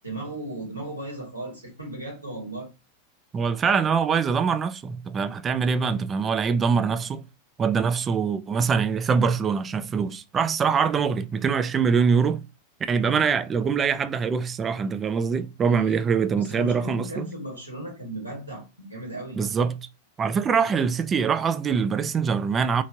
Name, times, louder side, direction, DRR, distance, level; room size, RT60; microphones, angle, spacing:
voice 1, 0.0-2.7 13.0-13.2 15.6-16.0 16.4-19.4, right 1 dB, 90° right, 1.4 m, -36 dB
voice 2, 3.3-7.2 7.6-12.4 12.9-17.3 19.3-19.8 20.2-22.8, right 6 dB, 20° right, 0.4 m, -24 dB
3.2 x 2.8 x 2.7 m
figure-of-eight pair, 90°, 0 cm